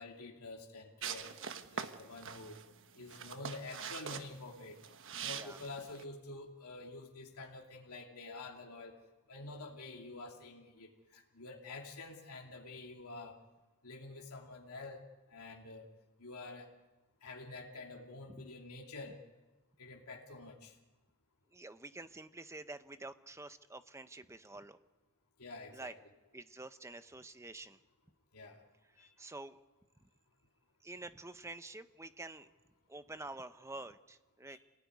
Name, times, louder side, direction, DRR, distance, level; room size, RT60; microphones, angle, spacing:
voice 1, 0.0-1.3 1.7-2.6 2.9-4.8 5.2-9.0 9.3-13.4 13.8-15.0 15.3-15.9 16.2-16.7 17.2-19.2 19.8-20.7 25.4-25.9 28.3-28.6 29.0-29.1 34.5-34.6, left 3 dB, 80° left, -1 dB, 2.7 m, -48 dB
sound 1, 1.0-6.0, right 7 dB, 60° right, 1.2 m, -44 dB
voice 2, 21.5-24.8 25.7-25.9 26.3-27.8 28.9-29.6 30.0-30.1 30.8-32.5 32.9-34.6, right 2 dB, 15° right, 11 dB, 0.8 m, -48 dB
27.5 x 18.0 x 9.6 m, 1.2 s
head